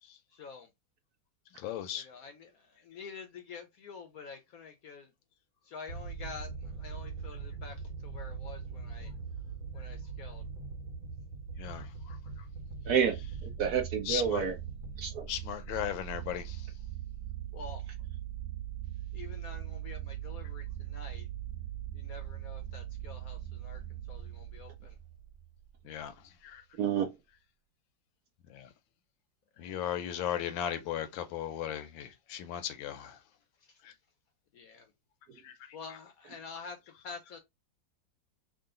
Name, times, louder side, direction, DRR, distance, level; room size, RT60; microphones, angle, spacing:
voice 1, 0.3-0.7 1.9-5.1 5.7-7.8 8.0-9.1 9.7-10.4 17.5-17.9 19.1-21.3 21.9-23.8 24.1-25.0 29.6-29.8 34.5-34.9 35.7-36.8 37.0-37.4, left 5 dB, 65° left, 0.9 m, -47 dB
voice 2, 1.5-2.1 11.6-12.2 14.1-14.5 15.3-16.7 25.8-26.1 26.4-26.6 28.5-28.7 29.6-33.2 33.8-33.9 35.4-35.8, left 10 dB, 80° left, 1.4 m, -37 dB
sound 1, 5.9-16.0, right 4 dB, 85° right, 1.6 m, -42 dB
voice 3, 12.9-14.5 15.0-15.3 26.7-27.1, right 7 dB, 70° right, 1.0 m, -29 dB
sound 2, 13.0-25.9, right 12 dB, 40° right, 1.6 m, -41 dB
3.8 x 2.4 x 3.6 m
omnidirectional pair, 2.1 m